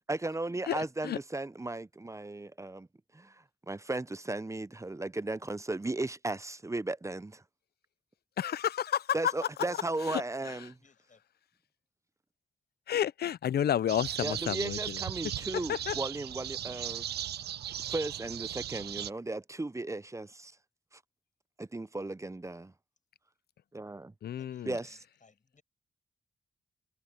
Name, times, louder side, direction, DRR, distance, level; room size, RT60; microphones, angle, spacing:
voice 1, 0.0-2.9 3.1-7.4 9.1-10.7 14.2-17.0 17.8-20.5 20.9-21.0 21.6-22.7 23.7-24.1 24.7-24.9, right 2 dB, 15° right, 0.7 m, -36 dB
voice 2, 0.7-1.2 8.4-9.1 10.1-10.2 12.9-14.8 15.7-15.9 24.2-24.7, left 10 dB, 70° left, 0.6 m, -31 dB
voice 3, 10.3-11.2 24.4-25.6, left 4 dB, 50° left, 7.2 m, -63 dB
sound 1, 13.9-19.1, right 11 dB, 75° right, 0.6 m, -37 dB
supercardioid pair, 45°, 17 cm